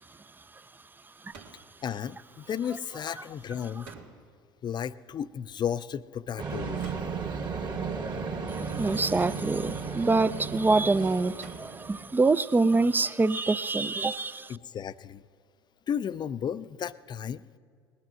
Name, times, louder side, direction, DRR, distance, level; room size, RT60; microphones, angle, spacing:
sound 1, 1.3-1.8 3.8-4.5 6.8-7.4 9.2-9.7 11.4-12.0, right 5 dB, 70° right, 1.8 m, -49 dB
voice 1, 1.8-3.9 4.6-6.9 14.5-15.2 15.9-17.4, left 8 dB, 35° left, 15 dB, 0.5 m, -33 dB
sound 2, 6.4-12.2, right 5 dB, 40° right, 2.0 m, -34 dB
voice 2, 8.5-14.6, right 3 dB, 15° right, 16 dB, 0.5 m, -25 dB
19.5 x 9.7 x 6.3 m, 2.1 s
hypercardioid pair, 65°, 12 cm